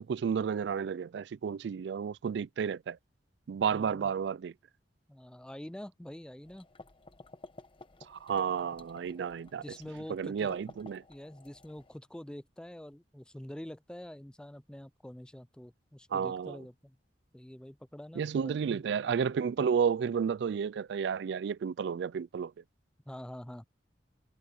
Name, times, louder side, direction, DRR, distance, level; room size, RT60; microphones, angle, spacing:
voice 1, 0.0-3.0 3.5-4.5 8.1-9.6 10.1-11.0 16.1-16.6 18.2-22.5, right 7 dB, 65° right, 0.3 m, -31 dB
voice 2, 3.7-4.1 5.1-6.7 9.5-10.5 11.1-17.0 17.3-18.8 23.1-23.6, left 1 dB, 5° left, 0.4 m, -46 dB
sound 1, 6.4-12.0, left 2 dB, 30° left, 1.1 m, -54 dB
head